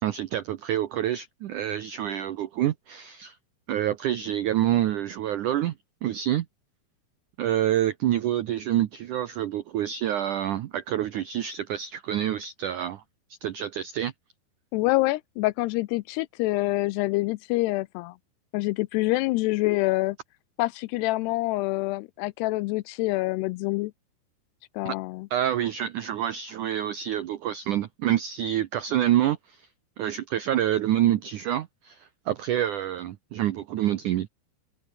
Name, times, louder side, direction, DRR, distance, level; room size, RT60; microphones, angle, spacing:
voice 1, 0.0-3.4 3.7-5.7 6.0-6.5 7.4-13.0 13.4-14.1 24.9-25.0 25.3-29.7 30.0-34.3, right 12 dB, 85° right, 1.8 m, -27 dB
voice 2, 14.7-18.2 18.5-20.2 20.6-23.9 24.8-25.3, left 20 dB, 80° left, 2.5 m, -26 dB
open air
omnidirectional pair, 5.0 m